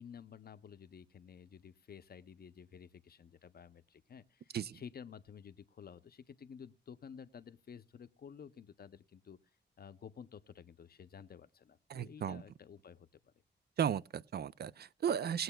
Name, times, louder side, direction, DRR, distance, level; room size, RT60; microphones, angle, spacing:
voice 1, 0.0-9.4 9.8-13.3, left 7 dB, 55° left, 0.6 m, -53 dB
voice 2, 11.9-12.4 13.8-15.4, right 8 dB, 60° right, 0.4 m, -35 dB
20.5 x 7.9 x 2.2 m
cardioid pair, 75°, 19 cm